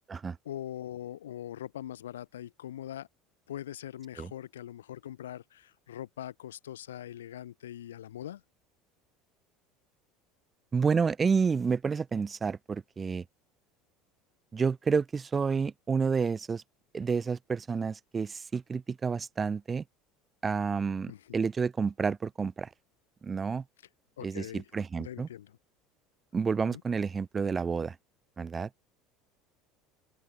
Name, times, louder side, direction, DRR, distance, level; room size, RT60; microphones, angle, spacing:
voice 1, 0.4-3.1 3.5-8.4 21.1-21.2 24.2-24.6 25.0-25.5 26.6-26.8, left 11 dB, 75° left, 2.8 m, -42 dB
voice 2, 10.7-13.2 14.5-16.6 16.9-19.8 20.4-22.7 23.2-23.6 24.2-25.3 26.3-28.0 28.4-28.7, right 5 dB, 25° right, 2.7 m, -29 dB
open air
figure-of-eight pair, 70°, 0 cm